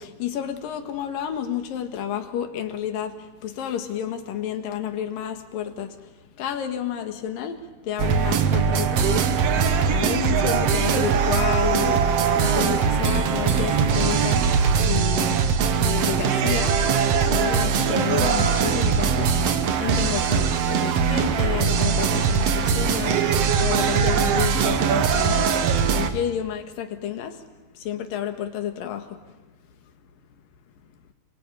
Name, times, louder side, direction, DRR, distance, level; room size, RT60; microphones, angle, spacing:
voice 1, 0.0-3.1 3.4-5.9 6.4-7.6 7.9-9.4 9.9-12.0 12.4-14.4 14.8-15.4 15.8-16.8 17.3-19.5 19.8-23.2 23.6-25.5 25.9-27.3 27.8-29.0, left 9 dB, 65° left, 7 dB, 3.2 m, -30 dB
sound 1, 8.0-26.1, right 6 dB, 65° right, 1.6 m, -21 dB
27.5 x 23.0 x 9.1 m, 1.2 s
omnidirectional pair, 4.6 m